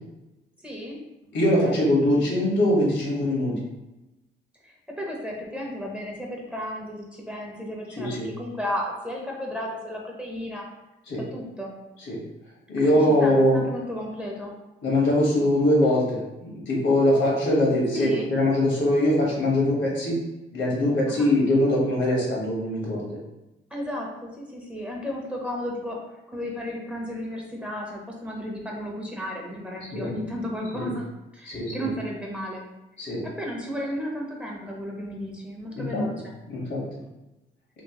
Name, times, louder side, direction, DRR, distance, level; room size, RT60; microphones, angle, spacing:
voice 1, 0.6-1.0 1.6-1.8 4.6-10.7 11.3-11.8 12.9-14.5 17.9-18.3 21.1-21.3 23.7-26.0 26.3-31.1 31.3-32.6 33.2-36.4, equal, 5° right, -2 dB, 0.7 m, -33 dB
voice 2, 1.3-3.5 7.9-8.3 11.1-11.2 12.1-12.2 12.7-13.6 14.8-20.2 20.5-23.2 29.9-30.1 30.7-30.9 31.5-31.9 33.0-33.2 35.7-36.0 36.5-36.8, left 1 dB, 70° left, -3 dB, 1.3 m, -22 dB
3.0 x 2.9 x 2.9 m, 0.98 s
cardioid pair, 90°, 20 cm